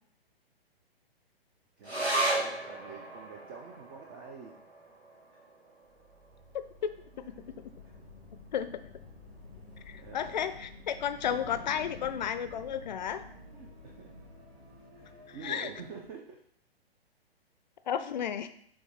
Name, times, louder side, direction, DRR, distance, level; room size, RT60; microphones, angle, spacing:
voice 1, 1.8-4.6 5.3-5.4 7.1-7.5 7.8-7.9 10.0-10.6 13.5-14.1 15.0-16.4, right 5 dB, 20° right, 1 dB, 0.5 m, -47 dB
sound 1, 1.8-8.6 8.9-9.0 9.4-10.0 10.6-10.7, right 2 dB, 90° right, 1.8 m, -37 dB
sound 2, 5.8-16.1, right 1 dB, 45° right, 2.6 m, -55 dB
voice 2, 6.5-6.9 7.3-7.7 8.5-8.8 9.9-13.2 15.3-15.7 17.9-18.5, left 8 dB, 45° left, 11 dB, 0.6 m, -33 dB
sound 3, 7.1-15.5, left 5 dB, 85° left, 0.7 m, -51 dB
7.1 x 3.2 x 4.6 m, 0.64 s
figure-of-eight pair, 120°, 31 cm